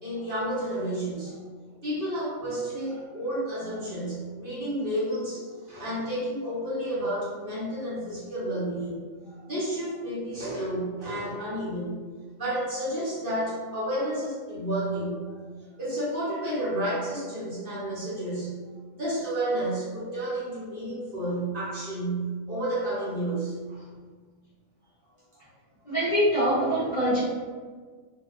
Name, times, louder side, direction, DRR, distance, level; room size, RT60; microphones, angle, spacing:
voice 1, 0.0-1.4 1.8-12.0 12.4-15.4 15.8-18.6 18.9-23.5 25.3-25.4, right 1 dB, 45° right, -9 dB, 0.9 m, -31 dB
voice 2, 25.8-27.2, equal, 40° left, -12 dB, 0.6 m, -24 dB
2.7 x 2.2 x 2.4 m, 1.5 s
omnidirectional pair, 1.4 m